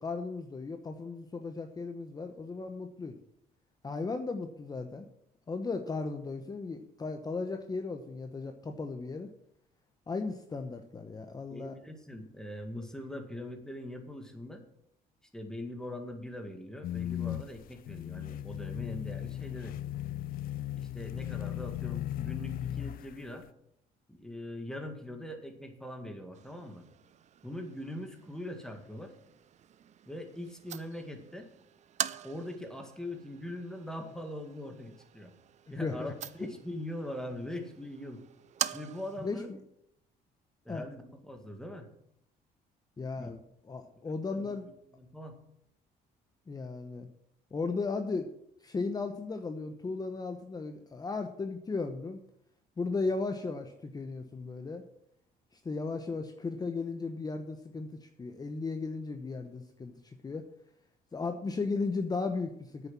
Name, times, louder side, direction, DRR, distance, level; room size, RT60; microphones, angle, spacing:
voice 1, 0.0-3.2 3.8-5.0 5.5-9.3 10.1-11.7 35.7-36.1 39.2-39.4 40.7-40.8 43.0-43.4 43.7-44.7 46.5-47.1 47.5-48.3 48.6-52.2 52.8-54.8 55.5-60.5 61.1-62.9, left 4 dB, 25° left, 6 dB, 0.9 m, -36 dB
voice 2, 11.5-14.6 15.3-19.8 20.8-23.5 24.1-26.8 27.4-29.1 30.1-31.5 32.2-35.3 35.7-38.2 38.7-39.5 40.7-41.9 43.2-43.3 44.3-45.4, left 1 dB, 5° left, 4 dB, 2.0 m, -42 dB
sound 1, 16.8-23.3, left 12 dB, 60° left, 0.4 m, -37 dB
sound 2, 26.3-39.3, right 10 dB, 45° right, 0.5 m, -43 dB
8.9 x 7.0 x 7.4 m, 0.73 s
cardioid pair, 110°, 17 cm